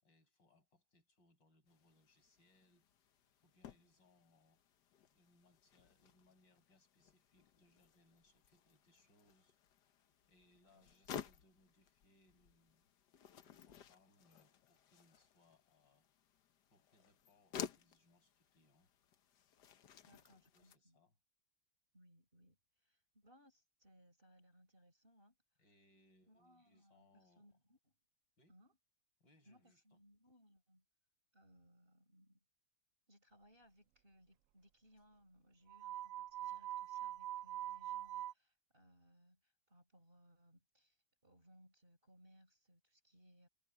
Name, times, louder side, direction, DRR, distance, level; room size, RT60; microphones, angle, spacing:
voice 1, 0.0-3.1 3.4-4.6 5.1-9.6 10.3-12.9 13.4-16.1 16.7-18.9 20.0-21.2 25.6-27.5 28.4-28.6 29.2-30.0, left 2 dB, 85° left, 7.0 m, -73 dB
sound 1, 1.7-20.8, left 8 dB, 70° left, 1.6 m, -55 dB
voice 2, 20.1-21.0 21.9-25.4 26.3-27.9 28.5-28.8 29.5-30.8 31.3-32.4 33.1-43.5, equal, 30° right, 5.8 m, -68 dB
sound 2, 35.7-38.3, right 13 dB, 85° right, 0.7 m, -44 dB
omnidirectional pair, 1.9 m